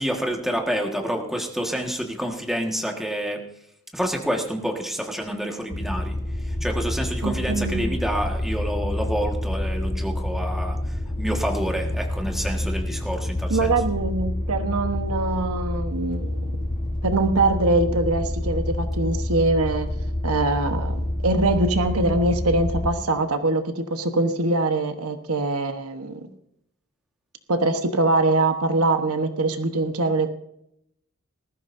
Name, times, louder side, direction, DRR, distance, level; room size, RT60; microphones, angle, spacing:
voice 1, 0.0-3.4 3.9-6.2 6.4-13.7, equal, ahead, 1 dB, 1.6 m, -28 dB
sound 1, 5.7-22.9, left 1 dB, 40° left, 1.2 m, -28 dB
voice 2, 7.2-7.9 13.5-16.7 17.0-19.9 20.2-26.3 27.5-30.3, right 2 dB, 75° right, 7 dB, 1.2 m, -23 dB
19.5 x 14.5 x 2.7 m, 0.78 s
head